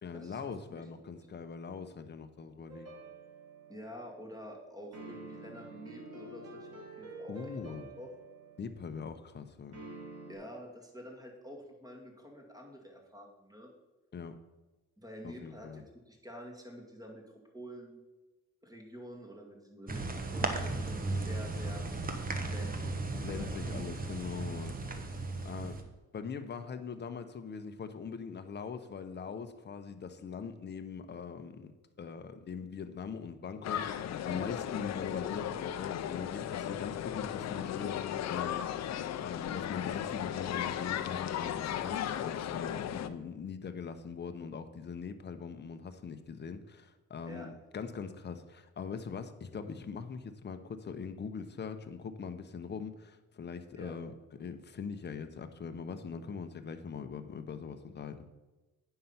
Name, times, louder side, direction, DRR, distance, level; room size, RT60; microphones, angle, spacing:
voice 1, 0.0-2.9 7.3-7.9 8.6-9.8 14.1-14.4 15.2-15.8 23.1-25.1 25.4-25.8 26.1-54.1 54.4-58.3, left 6 dB, 35° left, 8 dB, 0.9 m, -42 dB
sound 1, 2.7-4.1 4.9-8.9 9.7-10.4, right 2 dB, 55° right, 2.6 m, -48 dB
voice 2, 3.7-8.1 10.3-13.7 15.0-17.2 17.5-18.0 18.6-21.8 22.4-23.8 47.3-47.5 53.8-53.9, equal, 10° right, 1 dB, 2.3 m, -48 dB
sound 2, 19.9-25.8, right 2 dB, 30° right, 1.2 m, -36 dB
sound 3, 33.6-43.1, left 10 dB, 60° left, 0.6 m, -36 dB
9.2 x 5.7 x 5.7 m, 1.1 s
cardioid pair, 90°, 30 cm